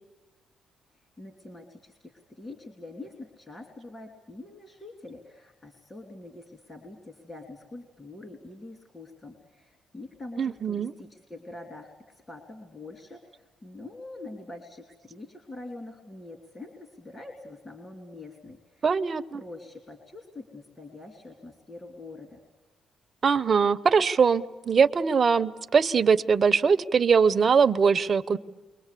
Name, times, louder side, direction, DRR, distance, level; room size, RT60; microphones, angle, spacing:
voice 1, 0.9-22.4, left 2 dB, 25° left, 4 dB, 3.1 m, -45 dB
voice 2, 10.4-10.9 18.8-19.4 23.2-28.4, right 6 dB, 40° right, 10 dB, 0.9 m, -22 dB
29.5 x 23.5 x 8.4 m, 1.2 s
cardioid pair, 90°, 0 cm